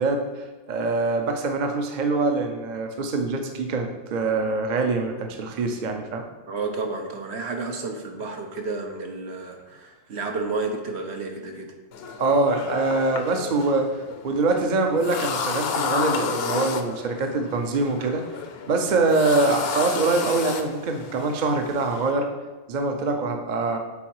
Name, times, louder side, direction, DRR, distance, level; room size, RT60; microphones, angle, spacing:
voice 1, 0.0-6.2 12.2-13.9 14.2-18.2 18.7-22.3 22.7-23.8, right 3 dB, 50° right, 4 dB, 0.7 m, -24 dB
voice 2, 6.5-11.7, right 3 dB, 75° right, 3 dB, 1.1 m, -31 dB
sound 1, 11.9-22.1, left 5 dB, 65° left, 0.8 m, -32 dB
7.2 x 3.9 x 4.7 m, 1.2 s
omnidirectional pair, 1.1 m